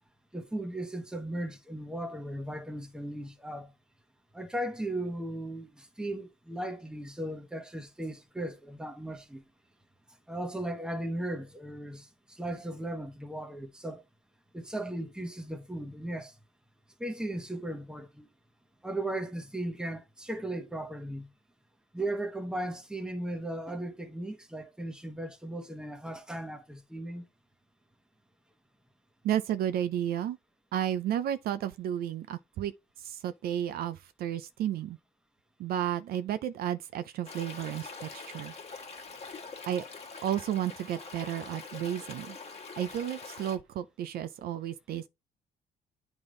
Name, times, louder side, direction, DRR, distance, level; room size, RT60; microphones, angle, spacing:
voice 1, 0.3-3.7 4.3-9.4 10.3-14.0 14.5-16.3 17.0-18.3 18.8-21.3 21.9-27.3, right 1 dB, 5° right, 1.1 m, -37 dB
voice 2, 29.2-30.4 30.7-32.7 33.0-35.0 35.6-38.6 39.7-39.8 40.2-42.4 42.8-45.1, right 11 dB, 65° right, 0.5 m, -32 dB
Stream, 37.2-43.6, left 4 dB, 35° left, 1.5 m, -44 dB
8.8 x 3.5 x 3.8 m
cardioid pair, 110°, 17 cm